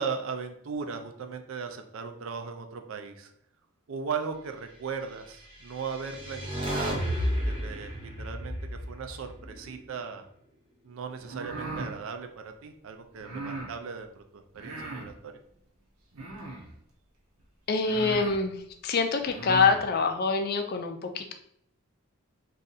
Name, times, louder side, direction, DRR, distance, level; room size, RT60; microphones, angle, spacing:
voice 1, 0.0-3.3 3.9-7.0 7.5-10.3 10.8-15.3, right 5 dB, 65° right, 7 dB, 0.4 m, -37 dB
sound 1, 5.5-9.9, equal, 25° right, 0.8 m, -32 dB
sound 2, 11.2-11.9 13.2-13.7 14.5-15.1 16.1-16.7 17.4-17.5 17.8-18.4 19.2-19.8, right 3 dB, 85° right, 0.7 m, -38 dB
voice 2, 17.7-21.3, left 4 dB, 45° left, 6 dB, 0.3 m, -26 dB
2.6 x 2.4 x 3.9 m, 0.71 s
head